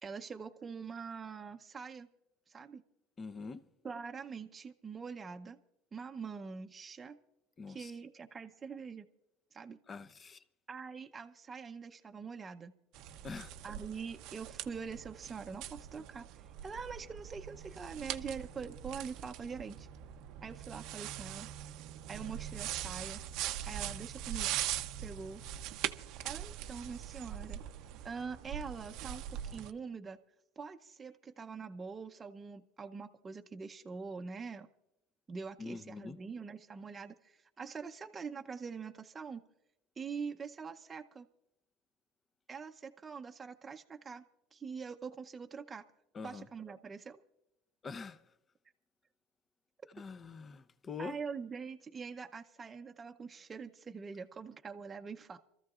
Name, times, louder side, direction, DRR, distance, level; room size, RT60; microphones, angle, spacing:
voice 1, 0.0-2.1 2.5-2.8 3.8-5.6 5.9-7.2 7.7-9.1 9.5-9.8 10.7-12.7 13.6-19.9 20.4-21.5 22.1-23.2 23.6-24.5 25.0-25.4 26.2-27.6 28.0-30.2 30.6-34.7 35.3-39.4 40.0-41.3 42.5-44.2 44.5-45.8 46.2-47.2 51.0-55.4, right 5 dB, 25° right, 0.7 m, -44 dB
voice 2, 3.2-3.6 7.6-7.9 9.9-10.4 13.2-13.5 35.6-36.2 46.1-46.5 47.8-48.2 49.9-51.2, left 4 dB, 25° left, 0.8 m, -44 dB
sound 1, 12.9-29.7, right 12 dB, 60° right, 0.7 m, -42 dB
28.0 x 14.0 x 2.5 m
supercardioid pair, 115°, 0 cm